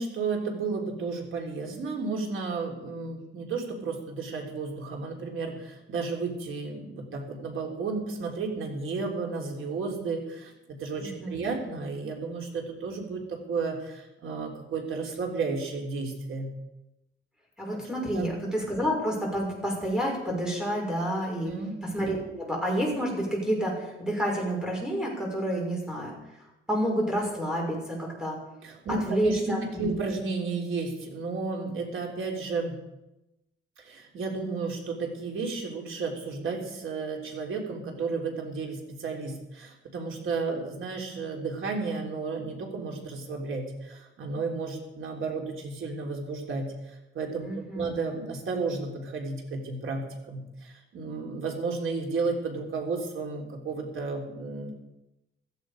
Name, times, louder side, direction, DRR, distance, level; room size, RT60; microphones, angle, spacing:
voice 1, 0.0-16.5 17.7-18.3 21.4-21.8 28.6-32.8 33.8-54.7, right 4 dB, 75° right, 1 dB, 3.6 m, -33 dB
voice 2, 11.0-11.4 17.6-21.5 21.9-26.2 26.7-28.4 28.9-29.9 47.4-47.9, equal, 5° right, -1 dB, 5.9 m, -29 dB
16.0 x 14.5 x 5.1 m, 0.93 s
wide cardioid pair, 155°, 21 cm